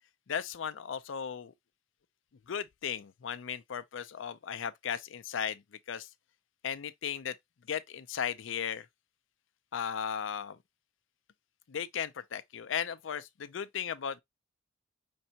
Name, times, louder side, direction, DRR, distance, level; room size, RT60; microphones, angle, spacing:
voice 1, 0.3-1.5 2.5-5.6 5.9-6.1 6.6-7.4 7.7-8.9 9.7-10.6 11.7-14.2, left 8 dB, 75° left, 0.5 m, -36 dB
5.3 x 3.3 x 2.8 m
head